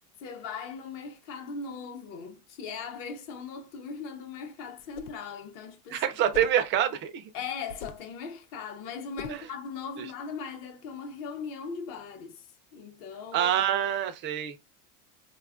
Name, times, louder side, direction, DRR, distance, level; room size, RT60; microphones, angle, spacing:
voice 1, 0.2-6.0 7.3-12.5 12.7-13.6, left 5 dB, 45° left, 0.8 m, -39 dB
sound 1, 4.8-5.3 6.3-6.7 7.7-8.1 9.2-9.5, left 7 dB, 80° left, 0.6 m, -43 dB
voice 2, 5.9-7.3 9.3-9.5 10.0-10.1 13.3-14.6, right 10 dB, 30° right, 0.4 m, -26 dB
4.1 x 2.3 x 2.4 m
supercardioid pair, 145°, 45 cm